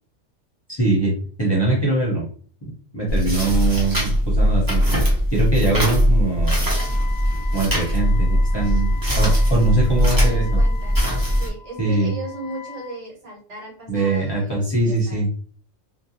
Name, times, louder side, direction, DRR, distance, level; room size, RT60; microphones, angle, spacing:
voice 1, 0.7-2.3 2.6-4.8 5.3-6.7 7.5-8.9 9.2-10.6 11.8-12.1 13.9-15.3, right 2 dB, 25° left, -5 dB, 0.6 m, -22 dB
sound 1, 3.1-11.5, equal, 20° right, 0.6 m, -20 dB
voice 2, 3.2-3.6 10.0-11.1 11.4-15.2, right 2 dB, 65° right, -3 dB, 1.4 m, -37 dB
Wind instrument woodwind instrument, 6.8-13.0, left 5 dB, 60° left, 0.7 m, -40 dB
2.5 x 2.2 x 2.8 m, 0.43 s
omnidirectional pair, 1.3 m